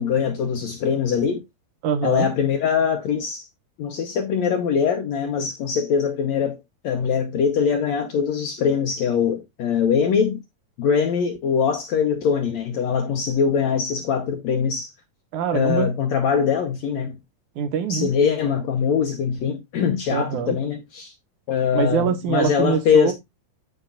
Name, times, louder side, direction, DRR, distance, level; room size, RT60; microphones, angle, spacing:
voice 1, 0.0-1.4 2.0-3.5 3.8-10.4 10.8-14.9 15.5-17.2 17.9-21.1 21.5-23.1, left 7 dB, 70° left, 1.7 m, -22 dB
voice 2, 1.8-2.3 15.3-15.9 17.6-18.1 20.1-20.6 21.7-23.1, right 8 dB, 65° right, 2.4 m, -24 dB
13.0 x 5.2 x 2.4 m
omnidirectional pair, 4.2 m